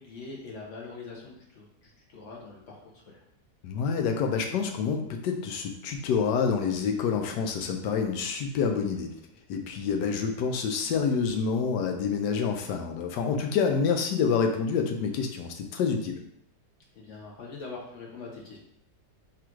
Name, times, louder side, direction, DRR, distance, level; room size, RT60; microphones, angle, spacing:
voice 1, 0.0-3.2 16.9-18.6, left 4 dB, 55° left, -2 dB, 1.0 m, -43 dB
voice 2, 3.6-9.1 9.5-16.2, left 6 dB, 75° left, 4 dB, 1.2 m, -27 dB
3.6 x 2.5 x 4.4 m, 0.73 s
omnidirectional pair, 1.9 m